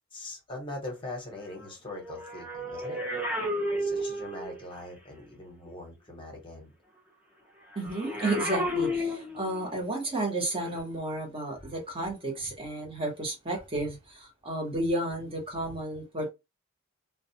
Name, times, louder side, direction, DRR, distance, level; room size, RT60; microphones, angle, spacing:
voice 1, 0.1-3.0 3.8-6.7, left 2 dB, 25° left, 0.9 m, -41 dB
sound 1, 1.9-4.7 7.8-9.7 10.6-10.8, left 1 dB, 5° right, 0.5 m, -32 dB
voice 2, 7.7-16.3, right 2 dB, 25° right, 0.9 m, -32 dB
2.3 x 2.2 x 2.7 m
head